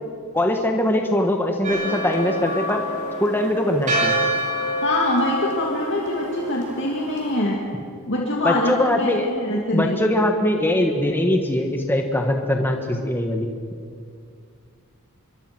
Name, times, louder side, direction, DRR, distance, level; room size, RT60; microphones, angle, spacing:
voice 1, 0.3-2.8 3.2-4.1 8.4-13.5, left 1 dB, 10° left, 3 dB, 1.5 m, -22 dB
Church bell, 1.6-7.4, right 1 dB, 35° right, 5.2 m, -27 dB
voice 2, 4.8-7.6 8.1-10.0, left 1 dB, 55° left, -2 dB, 2.5 m, -24 dB
26.0 x 23.0 x 6.2 m, 2.2 s
head